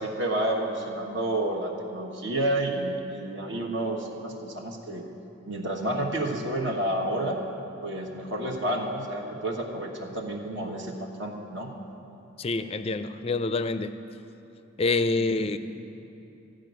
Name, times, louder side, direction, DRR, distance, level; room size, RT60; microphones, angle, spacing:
voice 1, 0.0-5.1 5.5-7.4 7.8-11.7 15.2-15.5, right 1 dB, 60° right, 0 dB, 1.3 m, -30 dB
voice 2, 12.4-13.9 14.8-15.6, left 3 dB, 30° left, 11 dB, 0.4 m, -26 dB
14.0 x 5.2 x 9.3 m, 2.9 s
head